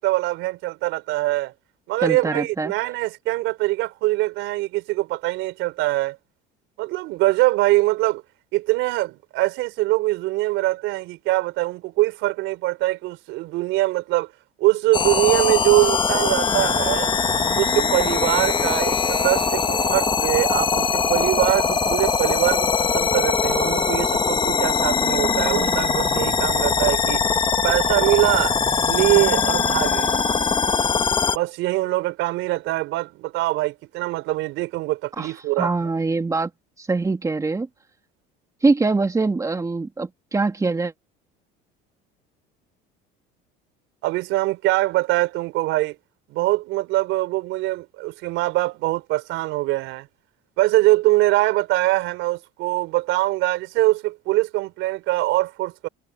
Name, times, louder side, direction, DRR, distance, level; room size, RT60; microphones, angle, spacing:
voice 1, 0.0-1.5 1.9-6.2 6.8-8.2 8.5-14.3 14.6-17.1 17.6-27.2 27.6-28.5 28.9-30.1 31.3-35.7 44.0-46.0 46.3-50.1 50.6-55.9, right 18 dB, 70° right, 4.0 m, -23 dB
voice 2, 2.0-2.7 35.2-36.5 36.8-37.7 38.6-40.9, right 3 dB, 15° right, 2.5 m, -23 dB
sound 1, 14.9-31.4, left 5 dB, 25° left, 1.3 m, -21 dB
supercardioid pair, 110°, 21 cm